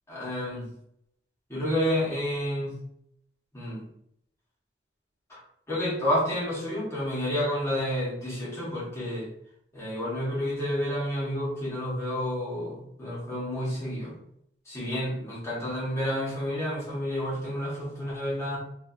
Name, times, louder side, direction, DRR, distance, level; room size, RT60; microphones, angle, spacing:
voice 1, 0.1-0.6 1.5-2.8 3.5-3.8 5.3-5.4 5.7-9.3 9.7-14.2 14.6-18.6, equal, 15° left, -7 dB, 1.3 m, -30 dB
4.3 x 2.7 x 2.7 m, 0.74 s
head